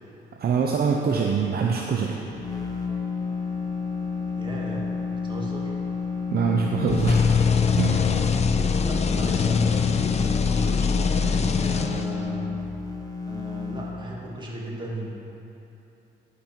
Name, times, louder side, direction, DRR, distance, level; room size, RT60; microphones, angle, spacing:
voice 1, 0.4-2.2 6.3-7.3 7.8-8.3, right 6 dB, 50° right, 0 dB, 0.7 m, -24 dB
sound 1, 2.2-13.9, left 5 dB, 20° left, 1.2 m, -30 dB
voice 2, 4.4-4.9 5.2-5.7 8.8-12.5 13.2-15.1, right 1 dB, 25° right, -3 dB, 2.0 m, -35 dB
sound 2, 6.9-12.4, left 5 dB, 35° left, 0.5 m, -23 dB
12.5 x 5.2 x 4.5 m, 3.0 s
cardioid pair, 90°, 20 cm